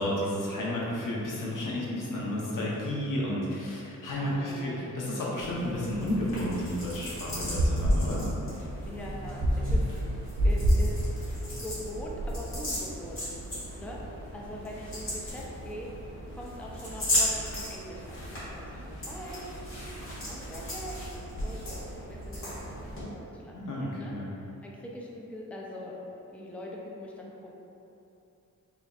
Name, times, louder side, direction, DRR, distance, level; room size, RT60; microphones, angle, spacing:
voice 1, 0.0-8.3 23.5-24.3, left 1 dB, 80° left, -5 dB, 0.8 m, -32 dB
voice 2, 4.3-4.9 8.9-9.8 10.4-11.0 11.4-13.2 13.7-15.9 16.3-19.5 20.3-21.1 21.4-21.6 22.1-22.6 23.1-23.6 23.9-24.1 24.4-26.0 26.3-27.5, equal, 5° left, -3 dB, 0.4 m, -42 dB
sound 1, 5.4-23.0, equal, 40° left, 1.5 m, -37 dB
sound 2, 7.2-12.6, equal, 80° right, 0.9 m, -28 dB
4.1 x 3.4 x 2.4 m, 2.8 s
wide cardioid pair, 95°, 31 cm